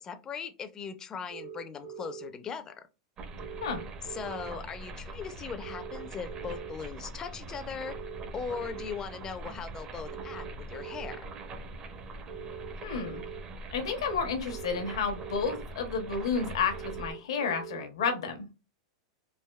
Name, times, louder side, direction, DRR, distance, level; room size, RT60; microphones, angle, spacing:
voice 1, 0.0-2.8 4.1-8.0 8.3-11.3, left 6 dB, 25° left, 10 dB, 0.4 m, -39 dB
sound 1, 1.3-2.3 3.4-4.5 5.6-6.7 7.8-8.9 10.0-11.2 12.3-13.4 14.5-15.6 16.7-17.8, right 7 dB, 75° right, 1.6 m, -43 dB
sound 2, 3.2-17.1, right 2 dB, 30° right, 0.6 m, -43 dB
voice 2, 12.8-13.2 13.7-18.3, left 5 dB, 80° left, 6 dB, 0.8 m, -31 dB
3.4 x 2.6 x 2.3 m, 0.28 s
supercardioid pair, 130°, 3 cm